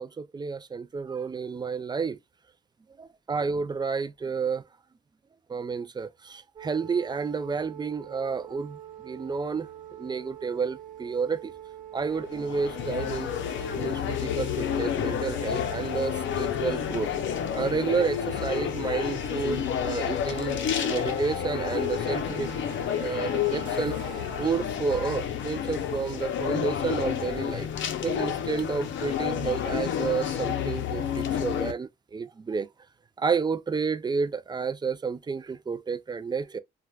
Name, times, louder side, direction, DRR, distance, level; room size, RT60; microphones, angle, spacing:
voice 1, 0.0-2.2 3.0-4.6 5.5-8.8 9.0-9.7 10.0-11.5 11.9-13.3 13.7-17.1 17.5-22.5 23.0-27.7 28.0-32.7 33.2-36.6, right 5 dB, 20° right, 0.3 m, -30 dB
sound 1, 6.6-24.5, right 10 dB, 45° right, 1.1 m, -44 dB
sound 2, 12.0-31.7, left 9 dB, 70° left, 0.6 m, -30 dB
3.2 x 2.3 x 2.2 m
cardioid pair, 90°, 20 cm